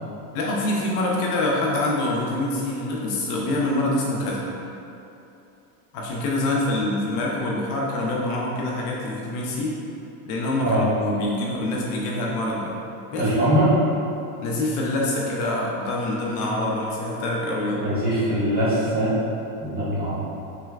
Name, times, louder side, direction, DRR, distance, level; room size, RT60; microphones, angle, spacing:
voice 1, 0.3-4.5 5.9-9.8 10.3-12.7 13.1-13.5 14.4-18.0, left 1 dB, 50° left, -3 dB, 0.7 m, -25 dB
voice 2, 13.2-13.7 17.8-19.1 19.6-20.2, right 1 dB, 20° right, -10 dB, 1.3 m, -22 dB
6.7 x 3.2 x 2.4 m, 2.8 s
supercardioid pair, 150°, 45 cm